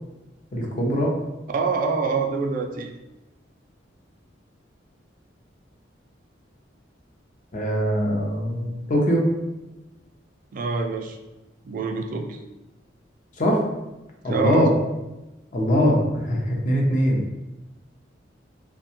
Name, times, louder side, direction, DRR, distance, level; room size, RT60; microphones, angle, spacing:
voice 1, 0.5-1.2 7.5-9.3 13.4-13.6 14.2-14.7 15.5-17.3, equal, 45° left, 0 dB, 0.5 m, -22 dB
voice 2, 1.5-3.0 10.5-11.2 11.6-12.4 14.3-14.7, right 4 dB, 45° right, 4 dB, 0.3 m, -25 dB
2.6 x 2.2 x 2.8 m, 1.0 s
head